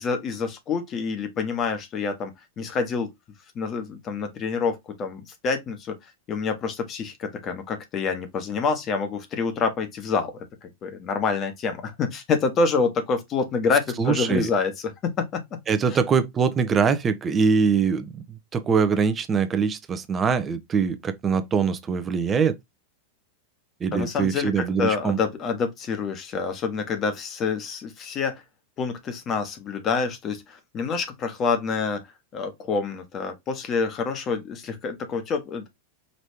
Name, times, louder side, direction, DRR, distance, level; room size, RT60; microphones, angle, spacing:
voice 1, 0.0-3.1 3.5-10.3 10.6-14.9 15.2-15.4 15.9-16.0 23.9-28.4 28.8-32.0 32.3-35.7, left 4 dB, 30° left, 1.2 m, -27 dB
voice 2, 14.0-14.5 15.7-22.6 23.8-25.2, right 6 dB, 20° right, 0.7 m, -23 dB
5.3 x 3.0 x 2.8 m
figure-of-eight pair, 90°, 0 cm